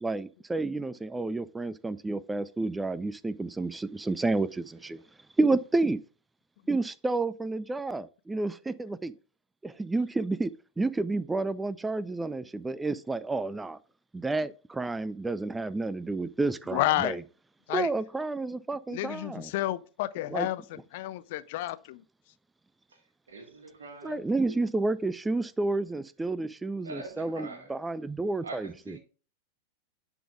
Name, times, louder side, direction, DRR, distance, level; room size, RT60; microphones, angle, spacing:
voice 1, 0.0-5.0 5.4-6.0 6.7-9.1 9.6-10.5 10.8-13.8 14.1-17.2 17.7-19.5 20.3-20.5 24.0-29.0, right 3 dB, 10° right, 0.3 m, -30 dB
voice 2, 16.7-17.2 17.7-17.9 18.9-22.0, left 16 dB, 50° left, 0.4 m, -30 dB
voice 3, 23.3-24.6 26.8-27.7 28.4-29.0, right 2 dB, 70° right, 1.8 m, -44 dB
10.0 x 3.9 x 3.6 m
figure-of-eight pair, 90°, 0 cm